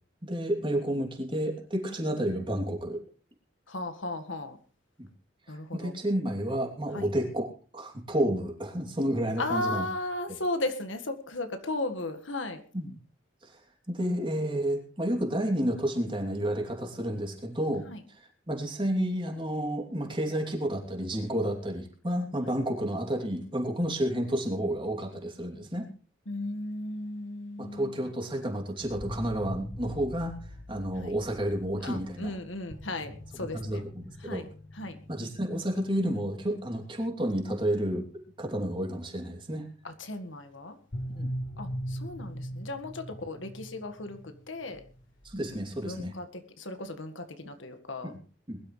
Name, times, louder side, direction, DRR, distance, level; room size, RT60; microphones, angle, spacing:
voice 1, 0.2-3.0 5.0-5.1 5.7-9.8 12.7-12.9 13.4-13.6 13.9-17.8 18.5-25.9 27.6-30.3 30.7-32.3 33.4-34.4 35.1-38.1 38.4-39.6 41.1-41.3 45.2-46.1 48.0-48.2 48.5-48.6, right 1 dB, 25° right, 2 dB, 2.9 m, -30 dB
voice 2, 3.7-4.6 5.5-5.9 6.9-7.1 9.4-12.6 17.9-18.0 22.4-22.6 26.3-28.1 31.0-31.1 31.8-33.9 34.2-35.0 39.8-40.8 41.6-44.8 45.8-48.1, left 2 dB, 80° left, 8 dB, 1.7 m, -36 dB
sound 1, 28.8-38.9 40.9-46.0, equal, 55° left, 1.5 m, -42 dB
21.5 x 12.0 x 3.3 m, 0.37 s
head